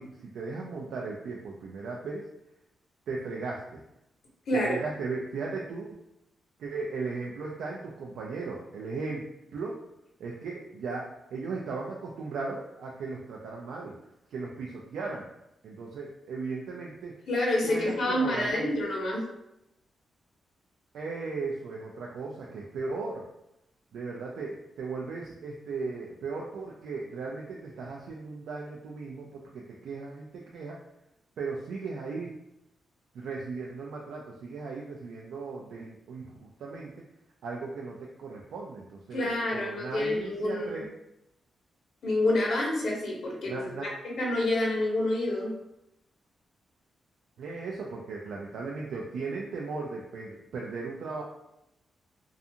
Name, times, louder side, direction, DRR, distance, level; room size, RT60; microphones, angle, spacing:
voice 1, 0.0-2.3 3.1-3.8 4.5-6.0 6.6-9.8 10.2-13.9 14.3-15.3 15.6-17.1 17.6-18.7 20.9-23.2 23.9-30.8 31.4-32.3 33.1-36.9 37.4-40.8 43.5-43.9 47.4-51.2, right 4 dB, 90° right, -2 dB, 0.3 m, -37 dB
voice 2, 4.5-4.8 17.3-19.2 39.1-40.9 42.0-45.5, left 1 dB, 75° left, -2 dB, 0.8 m, -28 dB
2.4 x 2.3 x 2.7 m, 0.85 s
cardioid pair, 105°, 0 cm